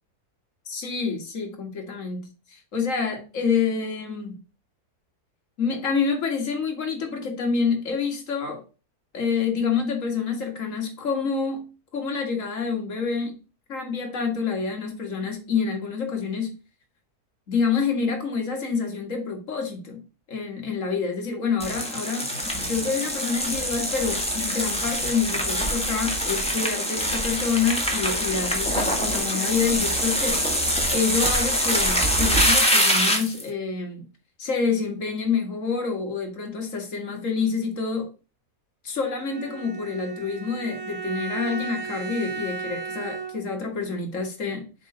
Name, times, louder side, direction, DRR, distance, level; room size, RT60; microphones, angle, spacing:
voice 1, 0.7-4.4 5.6-8.6 9.1-11.7 11.9-13.4 13.7-16.6 17.5-20.0 20.3-30.4 30.9-34.0 34.4-38.1 38.8-44.7, left 5 dB, 55° left, 2.1 m, -27 dB
sound 1, 21.6-33.4, equal, 5° left, 1.6 m, -24 dB
Bowed string instrument, 39.2-43.7, right 4 dB, 60° right, 1.4 m, -34 dB
7.3 x 3.9 x 5.3 m
omnidirectional pair, 1.6 m